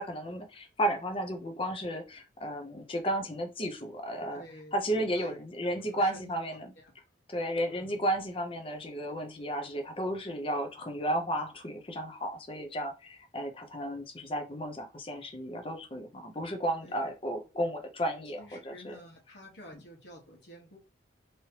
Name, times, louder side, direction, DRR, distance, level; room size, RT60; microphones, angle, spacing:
voice 1, 0.0-4.4 4.7-6.7 7.3-19.0, right 1 dB, 30° left, 0.6 m, -33 dB
voice 2, 4.1-4.7 5.1-5.3 5.9-6.4 6.8-6.9 7.7-8.0 16.8-16.9 18.4-20.8, equal, 70° left, 1.4 m, -50 dB
3.2 x 2.9 x 2.9 m
head